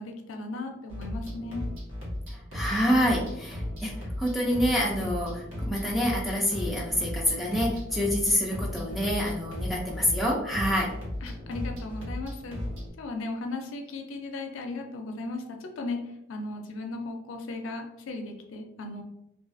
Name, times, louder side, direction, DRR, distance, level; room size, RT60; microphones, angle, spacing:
voice 1, 0.0-1.6 11.2-12.6 13.0-19.0, left 2 dB, 80° left, 3 dB, 0.4 m, -36 dB
sound 1, 0.9-12.9, left 1 dB, 90° right, 1.0 m, -36 dB
voice 2, 2.3-10.9, equal, ahead, -3 dB, 0.3 m, -27 dB
2.4 x 2.3 x 2.4 m, 0.83 s
head